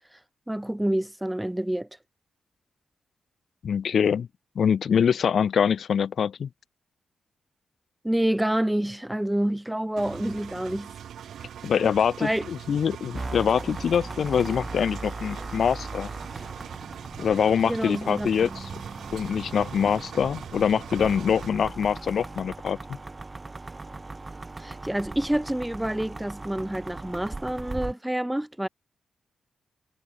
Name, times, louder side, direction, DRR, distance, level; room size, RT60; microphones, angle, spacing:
voice 1, 0.5-1.9 8.0-10.9 12.2-12.5 17.6-18.3 24.6-28.7, right 1 dB, 5° right, 0.5 m, -27 dB
voice 2, 3.6-4.3 4.6-6.5 11.6-16.1 17.2-18.7 19.1-22.8, left 7 dB, 70° left, 0.6 m, -24 dB
Engine, 10.0-21.5, right 9 dB, 85° right, 2.2 m, -42 dB
sound 1, 13.1-27.9, right 3 dB, 25° right, 4.7 m, -38 dB
cardioid pair, 90°, 0 cm